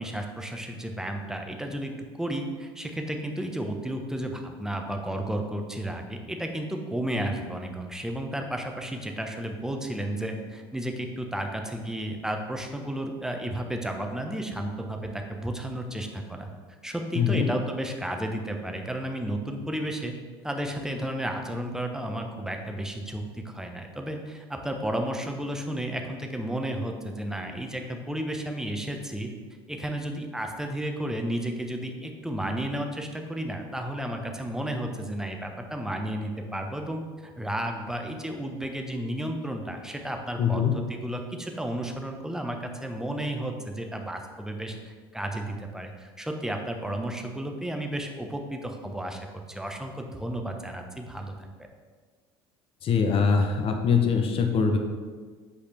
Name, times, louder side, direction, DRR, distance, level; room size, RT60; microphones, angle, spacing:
voice 1, 0.0-1.9 2.2-16.5 16.8-20.1 20.4-29.3 29.7-51.5, right 1 dB, 5° right, 3 dB, 1.0 m, -33 dB
voice 2, 17.1-17.5 40.4-40.8 52.8-54.8, left 6 dB, 45° left, 4 dB, 0.9 m, -23 dB
8.5 x 4.9 x 3.5 m, 1.5 s
hypercardioid pair, 75°, 14 cm